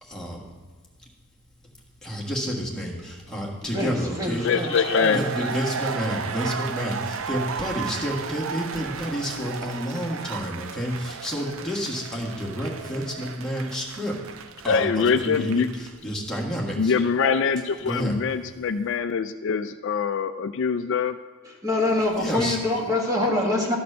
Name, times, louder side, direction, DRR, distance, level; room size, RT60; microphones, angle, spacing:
voice 1, 0.0-0.4 1.6-1.7 2.0-4.6 5.1-7.0 7.3-14.3 14.6-16.9 17.8-18.2 22.2-22.6, equal, 5° left, -4 dB, 1.6 m, -30 dB
voice 2, 3.7-5.2 21.4-23.8, left 2 dB, 15° right, -1 dB, 1.4 m, -25 dB
sound 1, 4.2-15.9, right 6 dB, 65° right, 0.5 m, -34 dB
voice 3, 4.4-5.2 14.7-15.7 16.8-21.2, left 5 dB, 60° left, 10 dB, 0.4 m, -23 dB
13.0 x 4.3 x 6.6 m, 1.4 s
head